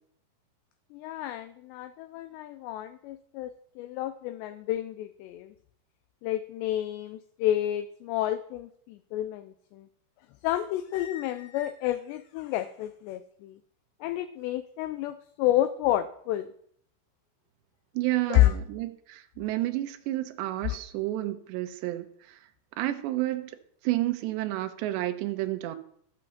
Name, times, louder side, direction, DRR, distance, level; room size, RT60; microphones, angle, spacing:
voice 1, 0.9-5.5 6.2-9.9 10.4-13.6 14.0-16.5 18.3-18.5, left 14 dB, 85° left, 2.5 m, -29 dB
voice 2, 17.9-22.4 22.8-23.6 23.8-25.8, right 16 dB, 75° right, 2.9 m, -30 dB
13.5 x 6.7 x 7.0 m
omnidirectional pair, 5.4 m